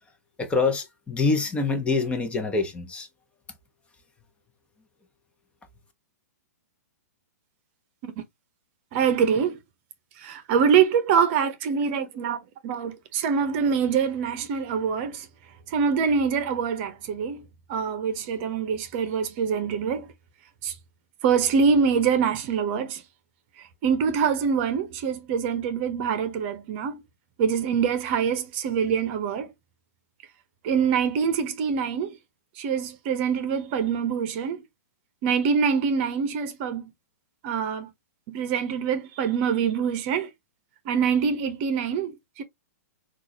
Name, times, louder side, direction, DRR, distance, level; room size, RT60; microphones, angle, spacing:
voice 1, 0.4-3.1, left 4 dB, 15° left, 1.0 m, -25 dB
voice 2, 8.9-9.6 10.2-15.3 15.7-17.4 17.7-20.1 20.6-20.8 21.2-23.0 23.6-27.0 27.4-29.5 30.6-32.2 32.6-34.6 35.2-36.9 37.4-37.9 38.3-40.3 40.8-42.4, right 6 dB, 45° right, 0.9 m, -25 dB
6.0 x 2.5 x 2.8 m
hypercardioid pair, 125°, 9 cm